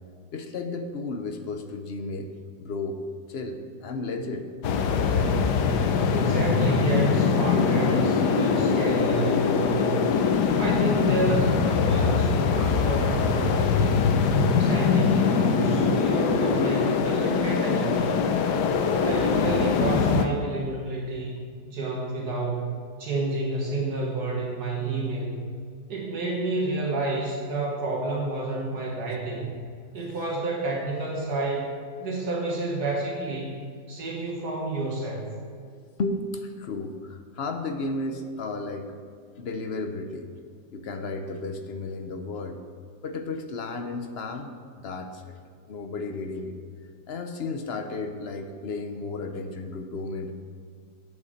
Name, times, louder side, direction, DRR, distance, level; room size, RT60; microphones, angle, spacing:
voice 1, 0.3-2.3 2.6-3.0 3.3-4.5 36.0-38.9 39.4-40.3 40.7-42.6 43.0-45.3 45.7-46.6 47.1-50.3, left 3 dB, 50° left, 6 dB, 0.8 m, -33 dB
sound 1, 4.6-20.3, left 6 dB, 90° left, 1.3 m, -23 dB
voice 2, 6.1-10.1 10.6-14.2 14.6-18.3 19.0-22.7 23.0-25.4 25.9-29.6 29.9-33.6 33.9-35.3, right 2 dB, 70° right, -3 dB, 2.1 m, -29 dB
8.6 x 7.0 x 6.5 m, 2.1 s
omnidirectional pair, 1.7 m